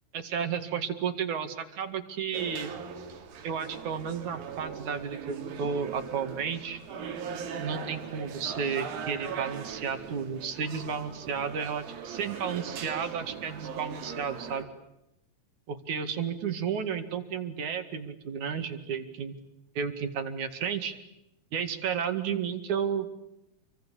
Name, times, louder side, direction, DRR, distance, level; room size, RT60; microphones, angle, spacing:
voice 1, 0.1-2.7 3.4-6.8 7.6-14.7 15.7-19.3 19.7-20.9 21.5-23.1, right 7 dB, 60° right, 8 dB, 3.3 m, -32 dB
sound 1, 2.3-14.7, right 7 dB, 80° right, 4.1 m, -40 dB
28.5 x 24.5 x 8.5 m, 0.87 s
omnidirectional pair, 4.2 m